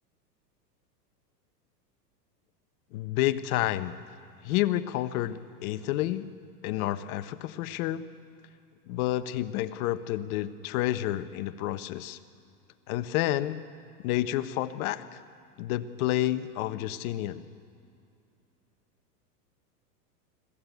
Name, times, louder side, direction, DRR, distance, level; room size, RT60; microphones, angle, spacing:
voice 1, 2.9-3.9 4.4-6.3 6.6-8.0 8.9-12.2 12.9-13.6 14.0-15.2 15.6-17.5, left 14 dB, 55° left, 12 dB, 1.2 m, -29 dB
25.5 x 15.0 x 8.3 m, 2.5 s
hypercardioid pair, 120°, 49 cm